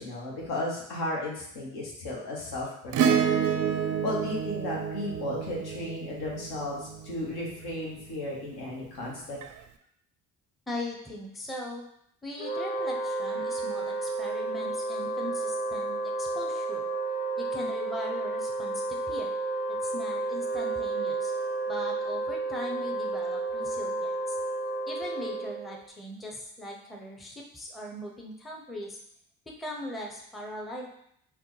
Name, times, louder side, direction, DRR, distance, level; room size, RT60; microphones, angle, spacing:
voice 1, 0.0-9.4, left 2 dB, 70° left, -3 dB, 1.1 m, -35 dB
Acoustic guitar / Strum, 2.9-7.5 9.4-9.5, right 8 dB, 50° right, 0.4 m, -29 dB
voice 2, 10.7-11.9 12.2-16.9 17.4-19.3 19.7-21.3 21.7-24.4 24.9-29.0 29.6-30.9, left 1 dB, ahead, -1 dB, 0.5 m, -40 dB
Wind instrument woodwind instrument, 12.4-25.8, right 3 dB, 30° left, 0.9 m, -31 dB
3.5 x 2.2 x 3.1 m, 0.72 s
supercardioid pair, 55°, 40 cm